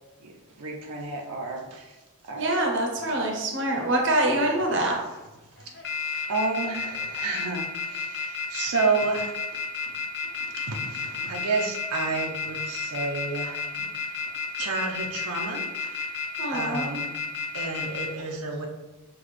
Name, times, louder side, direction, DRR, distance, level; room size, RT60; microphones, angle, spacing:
voice 1, 0.2-2.0 2.2-2.6 3.1-3.2 3.7-3.9 4.7-4.9 5.6-5.9 6.3-9.6 10.5-16.2 16.5-17.2 17.5-18.7, right 3 dB, 90° right, 0 dB, 0.6 m, -31 dB
voice 2, 2.3-5.0 16.4-16.8, right 1 dB, 55° right, 1 dB, 0.7 m, -25 dB
sound 1, 2.9-3.1 3.8-4.5 4.9-5.2 5.6-18.1, left 6 dB, 50° left, 0.6 m, -32 dB
5.8 x 2.3 x 3.2 m, 1.1 s
head